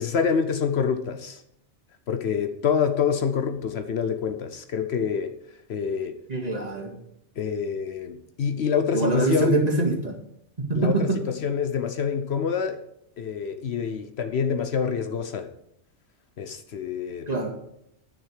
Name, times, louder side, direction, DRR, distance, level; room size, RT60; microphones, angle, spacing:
voice 1, 0.0-1.4 2.1-5.3 5.7-6.2 7.4-9.6 10.8-12.8 13.2-15.5 16.4-17.3, left 6 dB, 65° left, 9 dB, 0.9 m, -26 dB
voice 2, 6.3-6.9 8.9-10.1 10.7-11.2 17.3-17.5, right 2 dB, 35° right, -1 dB, 2.1 m, -24 dB
10.5 x 6.2 x 6.5 m, 0.76 s
omnidirectional pair, 1.2 m